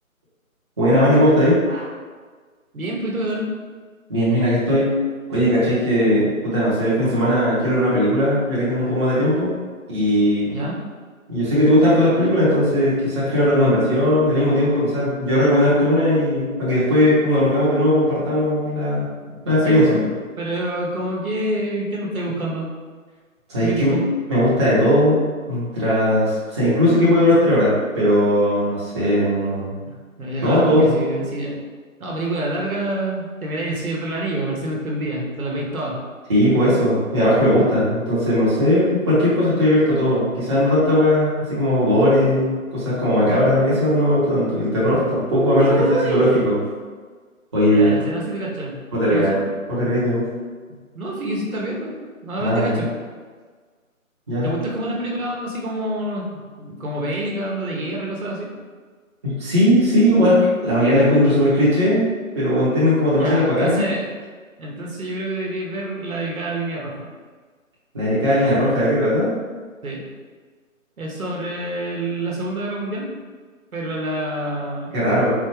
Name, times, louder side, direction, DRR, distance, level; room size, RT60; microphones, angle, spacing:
voice 1, 0.8-1.8 4.1-4.9 5.3-9.5 9.9-10.6 11.3-19.1 19.4-19.9 23.5-24.0 24.3-25.2 25.5-29.8 30.4-30.9 36.3-46.6 47.5-48.0 48.9-49.4 49.7-50.3 52.4-52.8 54.3-54.5 59.2-62.1 62.3-63.8 67.9-69.3 74.9-75.3, equal, 20° right, -10 dB, 0.8 m, -18 dB
voice 2, 2.7-3.5 10.5-10.8 19.3-19.4 19.7-20.1 20.4-22.7 23.6-24.0 29.8-29.9 30.2-31.6 32.0-36.0 45.3-46.4 47.7-48.8 49.1-49.4 50.9-51.9 52.2-52.9 54.4-58.5 63.2-64.1 64.6-67.1 69.8-70.0 71.0-73.1 73.7-75.0, right 1 dB, 85° right, -3 dB, 1.1 m, -27 dB
4.2 x 2.3 x 3.0 m, 1.5 s
figure-of-eight pair, 155°, 42 cm